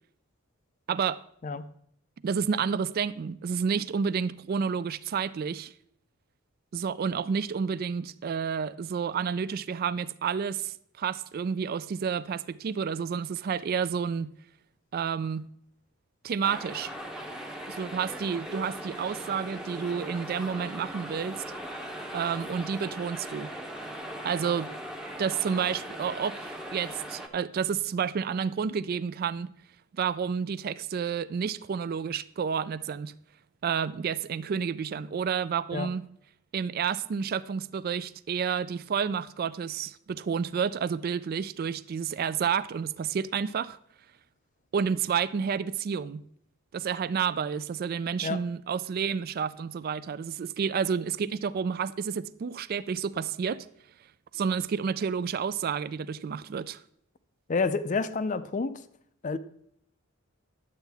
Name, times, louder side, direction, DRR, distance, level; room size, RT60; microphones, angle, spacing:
voice 1, 0.9-1.2 2.2-5.7 6.7-14.3 14.9-15.5 16.2-16.9 17.7-21.4 22.1-23.5 24.2-24.7 25.2-29.5 29.9-33.1 33.6-36.0 36.5-43.8 44.7-46.2 46.7-53.7 54.3-56.8, right 6 dB, 45° right, 0.3 m, -30 dB
sound 1, 16.4-27.3, equal, 5° right, 0.8 m, -39 dB
voice 2, 57.5-58.8 59.2-59.4, left 4 dB, 35° left, 0.4 m, -29 dB
11.0 x 8.1 x 3.4 m
head